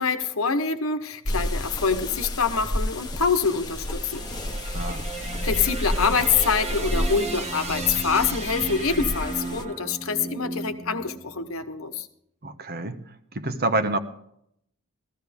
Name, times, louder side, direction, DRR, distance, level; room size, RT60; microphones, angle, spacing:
voice 1, 0.0-4.3 4.6-5.0 5.4-12.1, left 5 dB, 70° left, 8 dB, 1.1 m, -25 dB
sound 1, 1.3-9.6, left 1 dB, 20° left, 1.1 m, -31 dB
sound 2, 3.4-11.8, right 3 dB, 30° right, 0.9 m, -35 dB
voice 2, 4.7-5.0 12.4-13.0 13.3-14.0, right 2 dB, 45° right, 9 dB, 1.1 m, -27 dB
14.5 x 14.5 x 3.5 m, 0.71 s
head